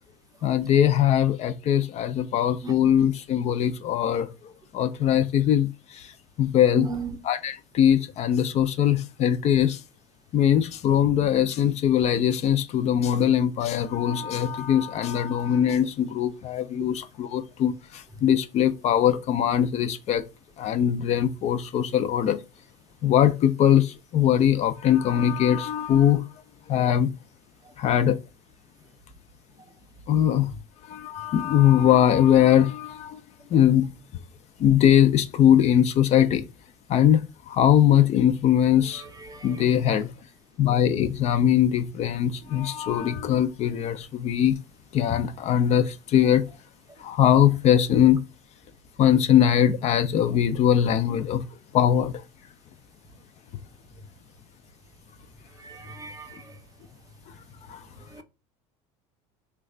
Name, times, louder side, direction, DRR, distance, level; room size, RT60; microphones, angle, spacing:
voice 1, 0.4-6.1 6.4-6.9 7.2-9.8 10.3-20.2 20.6-22.4 23.0-26.3 26.7-27.1 27.8-28.2 30.1-30.5 30.9-33.2 33.5-33.9 34.6-36.5 36.9-39.0 39.4-40.1 40.6-44.6 44.9-46.4 47.0-48.2 49.0-51.4 51.7-52.2 57.7-57.8, left 10 dB, 45° left, 0.4 m, -21 dB
voice 2, 6.7-7.1 39.3-39.5 55.6-56.4, right 5 dB, 20° right, 0.6 m, -35 dB
3.1 x 2.2 x 3.7 m
supercardioid pair, 100°, 16 cm